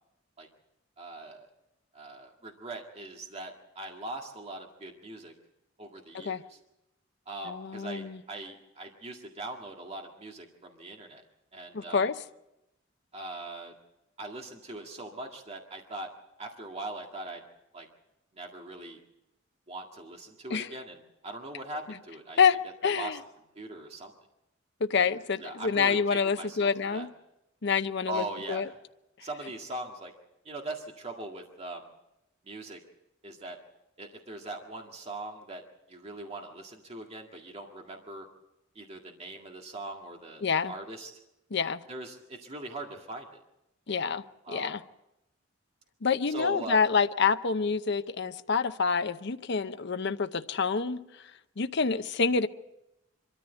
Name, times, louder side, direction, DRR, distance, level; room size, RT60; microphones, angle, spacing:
voice 1, 1.0-1.5 1.9-5.3 5.8-6.6 7.3-11.2 11.5-12.1 13.1-13.7 14.2-16.1 16.4-17.4 17.7-17.9 18.3-19.0 19.7-22.4 22.8-23.2 23.6-24.1 25.0-25.1 25.4-27.1 28.1-28.8 29.2-30.1 30.5-31.9 32.4-32.8 33.2-33.6 34.0-35.6 35.9-38.3 38.8-41.1 41.9-43.4 44.4-44.8 46.3-46.8 51.9-52.0, right 2 dB, 35° right, 1 dB, 1.9 m, -41 dB
voice 2, 7.5-8.2 11.7-12.1 20.5-20.7 22.4-22.6 22.8-23.2 24.8-27.1 27.6-28.7 40.4-40.7 41.5-41.8 43.9-44.8 46.0-51.0 51.6-52.5, left 5 dB, 65° left, 9 dB, 0.8 m, -27 dB
25.0 x 14.0 x 8.1 m, 0.90 s
head